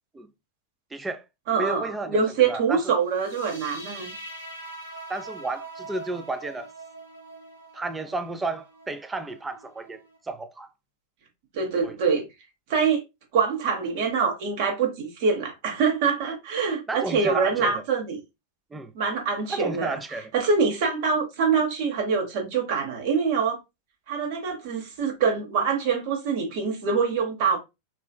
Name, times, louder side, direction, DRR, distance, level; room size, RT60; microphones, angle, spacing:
voice 1, 0.9-1.2 1.6-3.0 5.1-6.7 7.7-10.7 11.8-12.0 16.9-17.8 18.7-18.9 19.5-20.3, right 2 dB, 10° right, 0.4 m, -32 dB
voice 2, 1.5-4.1 11.5-12.2 12.7-13.0 13.3-18.2 18.9-20.0 20.3-23.6 24.1-27.6, right 5 dB, 50° right, 0.8 m, -24 dB
sound 1, 3.1-10.2, right 2 dB, 85° right, 1.2 m, -43 dB
3.2 x 2.7 x 2.2 m
figure-of-eight pair, 90°, 0 cm